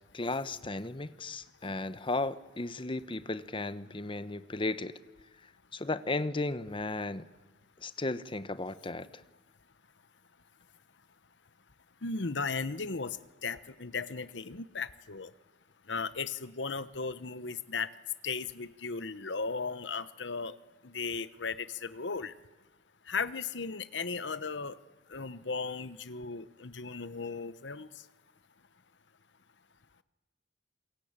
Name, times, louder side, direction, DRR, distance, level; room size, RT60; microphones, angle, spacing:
voice 1, 0.1-4.9 5.7-7.2 7.8-9.2, left 2 dB, 30° left, 14 dB, 1.0 m, -35 dB
voice 2, 12.0-13.2 13.4-15.3 15.9-17.9 18.2-20.5 20.8-22.3 23.1-24.7 25.1-27.9, left 4 dB, 80° left, 14 dB, 1.1 m, -36 dB
27.5 x 22.5 x 8.9 m, 1.1 s
head